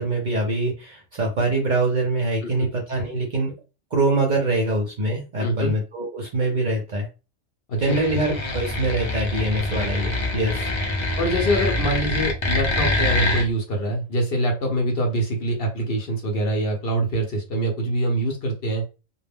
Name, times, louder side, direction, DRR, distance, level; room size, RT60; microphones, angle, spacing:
voice 1, 0.0-3.5 3.9-7.1 7.8-10.6, right 2 dB, 50° right, 0 dB, 0.6 m, -24 dB
voice 2, 5.4-5.7 7.7-8.0 11.2-18.8, right 1 dB, 55° left, 1 dB, 0.8 m, -24 dB
sound 1, 7.8-13.4, left 1 dB, 40° left, 0.4 m, -25 dB
2.2 x 2.1 x 3.3 m, 0.32 s
omnidirectional pair, 1.3 m